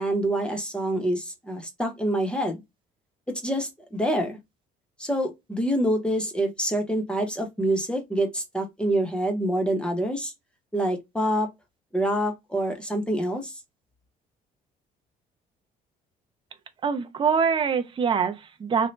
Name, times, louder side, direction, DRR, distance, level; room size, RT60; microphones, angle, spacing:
voice 1, 0.0-2.6 3.3-4.4 5.0-10.3 10.7-11.5 11.9-13.5, right 1 dB, 5° left, 0.8 m, -26 dB
voice 2, 16.8-18.9, right 6 dB, 30° right, 0.6 m, -24 dB
2.7 x 2.1 x 3.1 m
cardioid pair, 110°, 17 cm